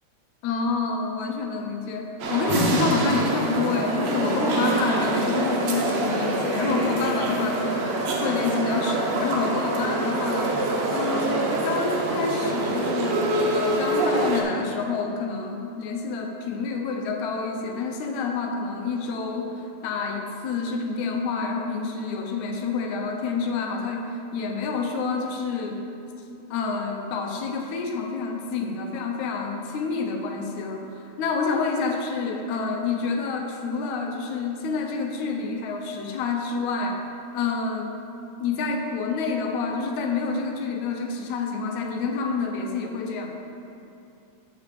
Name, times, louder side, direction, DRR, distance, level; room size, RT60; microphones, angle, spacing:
voice 1, 0.4-7.8 8.2-10.6 10.9-25.8 26.5-37.0 37.3-38.0 38.4-43.3, left 4 dB, 80° left, 2 dB, 2.1 m, -28 dB
sound 1, 2.2-14.4, right 2 dB, 70° right, 2.0 m, -25 dB
6.0 x 5.9 x 6.8 m, 2.6 s
omnidirectional pair, 3.4 m